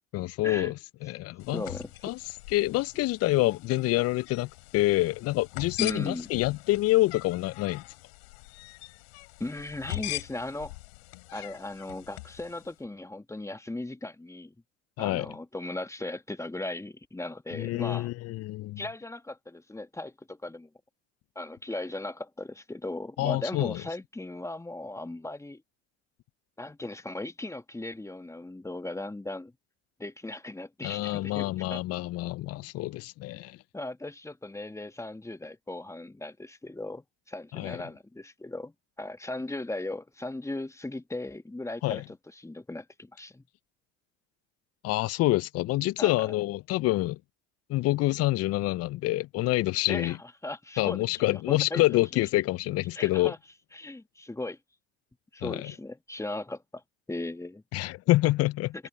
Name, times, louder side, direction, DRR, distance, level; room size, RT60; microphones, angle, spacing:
voice 1, 0.1-1.6 2.0-2.2 2.5-7.8 15.0-15.3 17.5-18.8 23.2-23.8 30.8-33.6 37.5-37.8 41.8-42.0 44.8-47.2 47.7-50.2 50.8-53.3 55.4-55.7 57.7-58.7, left 18 dB, 50° left, 0.4 m, -27 dB
sound 1, 1.4-12.7, left 23 dB, 85° left, 3.9 m, -42 dB
voice 2, 1.5-2.1 5.8-6.3 9.4-10.7 11.3-14.5 15.0-18.1 18.8-20.7 21.3-25.6 26.6-29.5 30.0-31.8 33.7-43.4 46.0-46.3 49.9-50.2 50.4-51.0 51.3-51.8 52.9-53.4 53.7-54.6 55.3-56.8 57.1-57.6, left 2 dB, 10° left, 1.4 m, -37 dB
hypercardioid pair, 75°, 32 cm